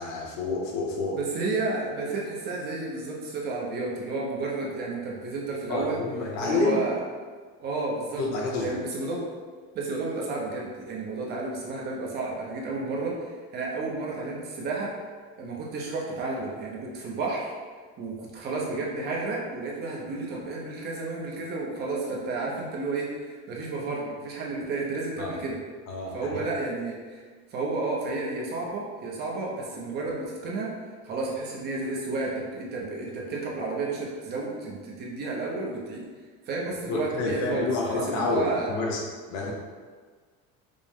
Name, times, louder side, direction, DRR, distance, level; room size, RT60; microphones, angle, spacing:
voice 1, 0.0-1.2 5.7-6.8 8.2-8.8 25.2-25.3 25.9-26.3 36.9-39.0 39.3-39.5, left 3 dB, 65° left, -1 dB, 0.8 m, -28 dB
voice 2, 1.1-6.0 6.4-6.9 7.6-8.2 8.6-9.2 9.7-14.9 15.4-17.5 18.0-25.6 26.1-27.2 27.5-30.7 31.0-36.0 36.5-37.7 38.1-38.7, right 3 dB, 35° right, -2 dB, 0.6 m, -31 dB
5.1 x 2.1 x 3.4 m, 1.5 s
cardioid pair, 180°, 30 cm